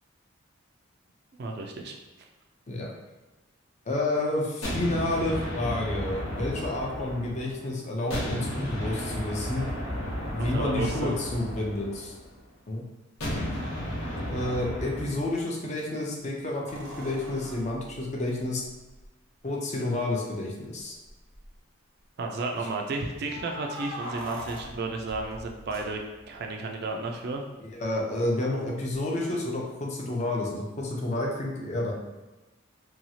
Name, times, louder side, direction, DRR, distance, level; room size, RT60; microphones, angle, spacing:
voice 1, 1.4-1.9 10.4-11.1 22.2-27.4, right 3 dB, 50° right, 2 dB, 0.3 m, -33 dB
voice 2, 3.9-9.7 10.3-12.1 12.7-12.8 14.3-18.6 19.4-20.9 27.6-31.9, left 2 dB, 35° left, -1 dB, 0.5 m, -30 dB
sound 1, 4.6-7.6 8.1-12.3 13.2-15.3, equal, 80° left, 0.9 m, -33 dB
sound 2, 16.7-19.1 20.0-20.1 20.4-20.5 21.1-21.5 23.2-26.4 28.9-29.0, equal, 85° right, 0.7 m, -42 dB
2.9 x 2.3 x 2.7 m, 1.1 s
head